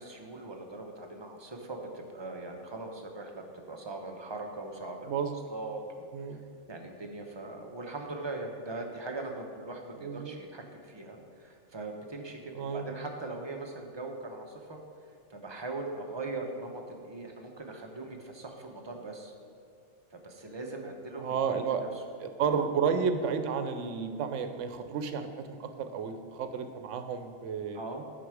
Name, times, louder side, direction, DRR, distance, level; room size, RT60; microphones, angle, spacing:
voice 1, 0.0-6.1 6.7-14.8 15.3-19.3 20.1-21.9 22.4-22.6 27.7-28.1, right 2 dB, 25° right, 2 dB, 0.7 m, -40 dB
voice 2, 10.0-10.3 12.5-12.9 21.2-21.8 22.2-27.8, right 6 dB, 85° right, 9 dB, 1.0 m, -32 dB
7.7 x 5.9 x 4.9 m, 2.4 s
omnidirectional pair, 1.2 m